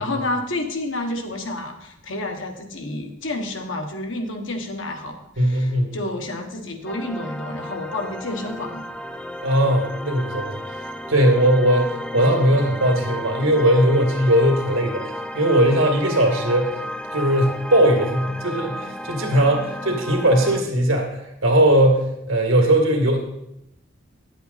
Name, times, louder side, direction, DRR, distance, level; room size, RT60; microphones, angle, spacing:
voice 1, 0.0-8.8, left 2 dB, 70° left, 4 dB, 1.2 m, -30 dB
voice 2, 5.4-6.0 9.4-10.8 11.1-16.8 17.1-23.2, right 1 dB, 85° right, 2 dB, 2.1 m, -19 dB
sound 1, 6.9-20.6, equal, 5° left, 0.3 m, -33 dB
10.0 x 7.9 x 4.1 m, 0.83 s
head